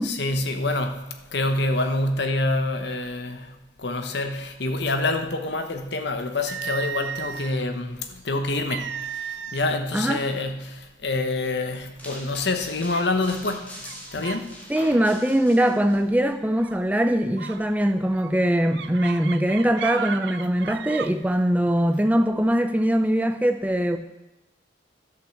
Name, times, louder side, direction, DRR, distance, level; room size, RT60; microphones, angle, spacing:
voice 1, 0.0-14.5, left 2 dB, 65° left, 6 dB, 1.0 m, -27 dB
sound 1, 6.5-7.7 8.7-9.8 10.1-10.4 11.1-11.2 11.7-12.1 12.9-13.2 13.8-14.5 14.8-15.1 16.6-16.8 17.4-21.1, right 8 dB, 65° right, 0.4 m, -35 dB
sound 2, 12.0-16.0, left 1 dB, 10° left, 1.5 m, -43 dB
voice 2, 14.7-24.0, equal, 10° right, 7 dB, 0.5 m, -22 dB
11.5 x 5.8 x 7.2 m, 1.0 s
head